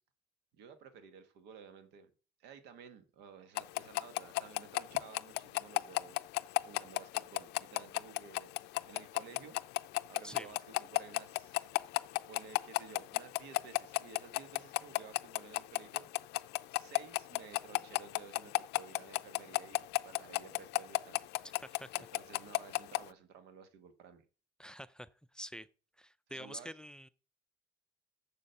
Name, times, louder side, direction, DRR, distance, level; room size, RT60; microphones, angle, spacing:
voice 1, 0.5-2.1 2.4-9.6 10.1-16.3 16.7-19.8 20.0-21.5 22.0-24.3 26.3-26.7, right 6 dB, 90° right, 1.5 m, -54 dB
sound 1, 3.6-23.0, left 19 dB, 80° left, 0.4 m, -32 dB
voice 2, 24.6-25.7 26.0-27.1, equal, 5° left, 0.5 m, -47 dB
7.4 x 6.9 x 6.5 m
cardioid pair, 110°, 17 cm